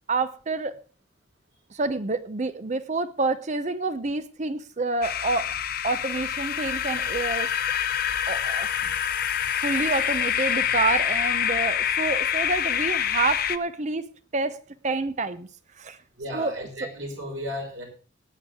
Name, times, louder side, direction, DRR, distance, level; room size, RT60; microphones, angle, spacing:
voice 1, 0.1-0.7 1.7-5.5 5.8-7.5 8.3-9.0 9.6-14.6 14.8-15.5 15.8-16.0 16.3-16.7, right 3 dB, 40° right, 0.6 m, -28 dB
sound 1, 5.0-13.6, left 9 dB, 50° left, 0.7 m, -26 dB
voice 2, 16.2-17.9, left 1 dB, 85° right, 5.8 m, -34 dB
18.5 x 9.3 x 3.6 m
head